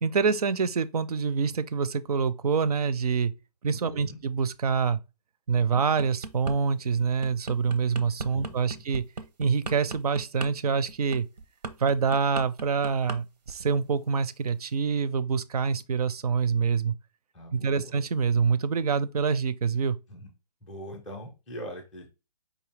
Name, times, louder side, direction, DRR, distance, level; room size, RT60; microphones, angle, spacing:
voice 1, 0.0-3.3 3.6-5.0 5.5-9.0 9.4-11.3 11.8-16.9 17.5-20.0, right 5 dB, 65° right, 0.5 m, -26 dB
voice 2, 3.9-4.2 8.3-8.8 17.3-17.9 20.1-20.3 20.6-22.1, equal, ahead, 0.4 m, -42 dB
sound 1, 5.8-6.6 7.0-13.2 13.5-13.8, right 4 dB, 90° right, 0.8 m, -37 dB
4.9 x 2.7 x 3.2 m
hypercardioid pair, 165°, 21 cm